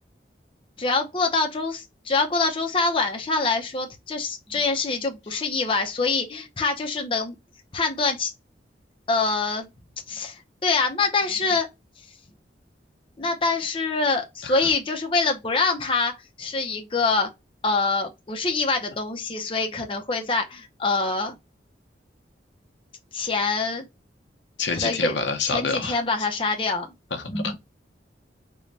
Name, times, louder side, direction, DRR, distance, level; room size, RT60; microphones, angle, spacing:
voice 1, 0.8-7.4 7.7-8.3 9.1-9.7 10.1-11.7 13.2-16.1 16.4-17.3 17.6-21.4 23.1-23.9 24.7-25.2 25.4-26.9 27.3-27.6, left 3 dB, 30° left, 0.6 m, -25 dB
voice 2, 24.6-26.0 27.1-27.6, left 4 dB, 90° left, 0.7 m, -27 dB
3.2 x 2.2 x 3.9 m
head